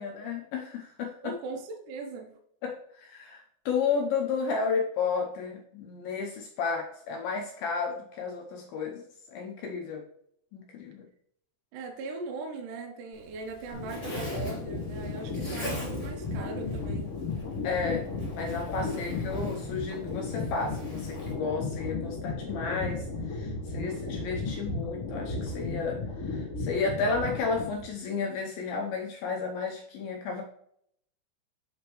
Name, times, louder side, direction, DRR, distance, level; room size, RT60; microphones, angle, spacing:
voice 1, 0.0-1.3 2.6-10.0 10.5-11.1 17.6-18.0 18.4-30.4, left 5 dB, 80° left, 1 dB, 2.1 m, -32 dB
voice 2, 1.2-2.3 11.7-17.1, right 3 dB, 80° right, 3 dB, 1.8 m, -39 dB
Zipper (clothing), 13.1-21.3, right 1 dB, 30° left, 0.6 m, -44 dB
sound 1, 13.7-27.9, left 3 dB, 55° left, 1.7 m, -34 dB
7.7 x 5.1 x 3.0 m, 0.68 s
omnidirectional pair, 5.0 m